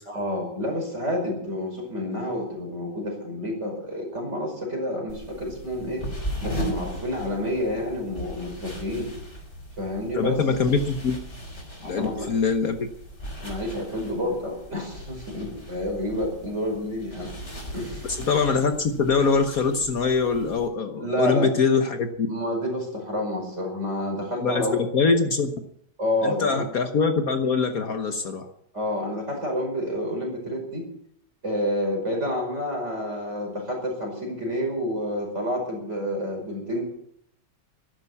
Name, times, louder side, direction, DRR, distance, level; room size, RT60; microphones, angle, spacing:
voice 1, 0.1-6.0 6.4-9.1 9.8-10.4 11.8-12.3 13.4-17.3 17.7-18.1 21.0-21.6 22.3-24.8 26.0-26.6 28.7-30.9 31.4-36.8, left 1 dB, 40° right, 1 dB, 5.6 m, -29 dB
sound 1, 5.1-20.7, equal, 30° left, 4.3 m, -38 dB
voice 2, 10.1-11.2 11.8-12.9 18.1-22.3 24.4-24.6 24.9-25.5 26.2-28.5, left 5 dB, 55° left, 7 dB, 1.5 m, -23 dB
13.0 x 11.5 x 8.3 m, 0.70 s
omnidirectional pair, 1.9 m